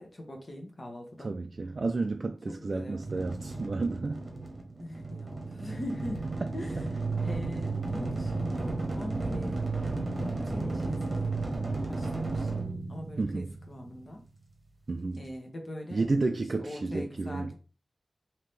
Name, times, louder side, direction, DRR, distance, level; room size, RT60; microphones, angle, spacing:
voice 1, 0.0-1.3 2.5-3.1 4.8-6.9 7.2-9.7 10.0-11.4 11.8-12.5 12.9-14.2 15.2-16.1 16.6-17.5, left 1 dB, 40° left, 1.0 m, -41 dB
voice 2, 1.2-4.2 6.8-6.9 13.2-13.5 14.9-15.3 15.9-17.5, right 3 dB, 55° right, 0.3 m, -31 dB
sound 1, 3.0-14.0, right 3 dB, 35° right, 1.0 m, -33 dB
3.7 x 2.8 x 3.2 m
wide cardioid pair, 95°, 0 cm